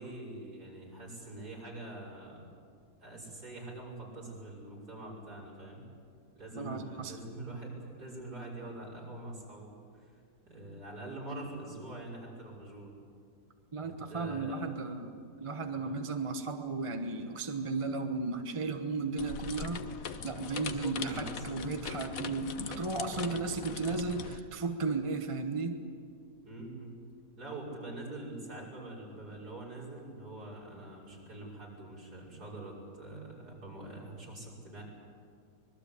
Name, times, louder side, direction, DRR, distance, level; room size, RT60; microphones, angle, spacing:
voice 1, 0.0-2.4 3.0-5.8 6.3-12.9 13.8-14.7 15.7-15.9 20.4-21.4 26.4-26.9 27.4-34.8, right 2 dB, 65° right, -4 dB, 6.5 m, -44 dB
voice 2, 6.6-7.2 13.7-25.8, right 3 dB, 20° right, 6 dB, 1.1 m, -35 dB
sound 1, 19.2-24.4, left 7 dB, 55° left, 1.3 m, -41 dB
25.0 x 21.5 x 8.4 m, 2.2 s
omnidirectional pair, 1.8 m